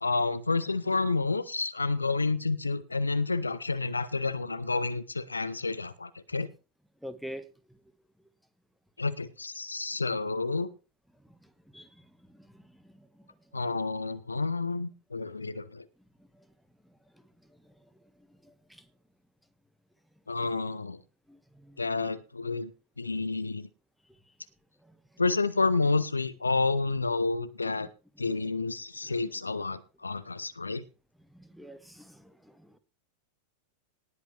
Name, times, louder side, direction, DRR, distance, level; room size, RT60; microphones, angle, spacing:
voice 1, 0.0-6.5 9.0-10.7 13.5-15.8 20.3-21.0 21.8-22.7 23.0-23.7 25.2-27.9 28.2-30.8, left 3 dB, 80° left, 0.8 m, -29 dB
voice 2, 7.0-7.4 11.7-11.9 12.4-12.5 13.0-13.1 18.7-18.8 21.3-21.8 31.3-32.3, equal, ahead, 1.4 m, -44 dB
19.0 x 8.0 x 3.3 m
figure-of-eight pair, 90°, 0 cm